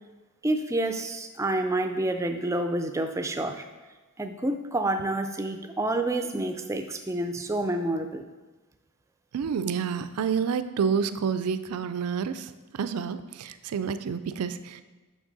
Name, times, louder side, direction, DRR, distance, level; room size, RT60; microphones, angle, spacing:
voice 1, 0.4-3.6 4.2-8.2, right 1 dB, 15° right, 7 dB, 0.4 m, -28 dB
voice 2, 9.3-12.5 12.8-14.8, right 6 dB, 85° right, 11 dB, 0.4 m, -29 dB
6.3 x 6.1 x 3.9 m, 1.2 s
head